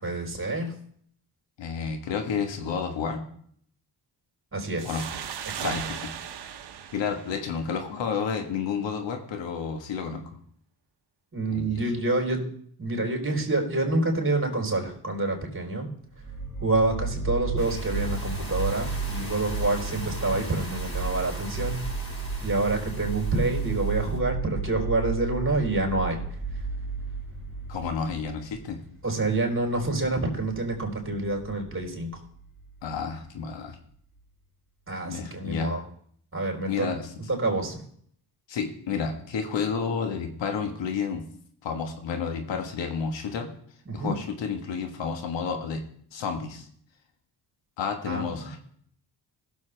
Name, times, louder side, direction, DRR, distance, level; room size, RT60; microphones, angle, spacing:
voice 1, 0.0-0.7 4.5-4.9 5.5-5.7 11.3-12.4 12.8-15.9 16.6-21.9 22.4-26.2 29.0-32.2 34.9-35.8 36.3-36.9 37.3-37.8 43.9-44.2 48.1-48.6, right 2 dB, 30° right, 1 dB, 3.8 m, -27 dB
voice 2, 1.6-3.2 4.8-5.2 5.6-6.1 6.9-10.2 11.5-11.8 27.7-28.8 32.8-33.8 35.0-35.8 36.7-37.1 38.5-41.2 41.6-43.5 43.9-45.8 46.1-46.7 47.8-48.6, left 6 dB, 75° left, 5 dB, 1.4 m, -31 dB
sound 1, 4.8-8.2, right 9 dB, 60° right, 1.0 m, -37 dB
sound 2, 16.1-33.2, right 4 dB, 5° left, 3.9 m, -33 dB
sound 3, 17.6-24.2, equal, 25° left, 5.4 m, -42 dB
16.5 x 7.2 x 3.3 m, 0.63 s
cardioid pair, 65°, 44 cm